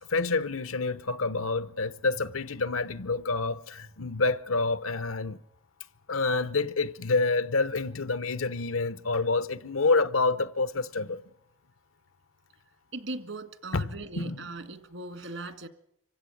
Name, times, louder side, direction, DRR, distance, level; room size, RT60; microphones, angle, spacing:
voice 1, 0.1-5.4 6.1-11.2 13.7-13.9 14.2-14.4, left 3 dB, 90° left, 0.9 m, -28 dB
voice 2, 12.9-15.7, right 2 dB, 70° right, 2.0 m, -39 dB
25.0 x 16.0 x 9.3 m
head